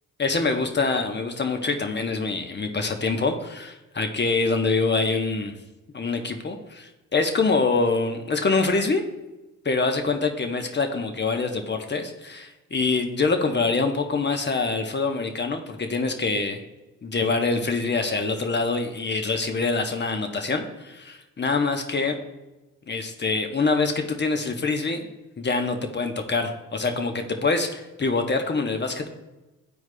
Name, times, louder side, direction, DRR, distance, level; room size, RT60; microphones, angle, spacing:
voice 1, 0.2-5.5 5.9-9.0 9.6-16.6 17.0-22.2 22.9-25.0 25.4-29.1, left 3 dB, 30° left, 5 dB, 0.9 m, -25 dB
12.5 x 4.6 x 2.2 m, 1.1 s
hypercardioid pair, 50°, 37 cm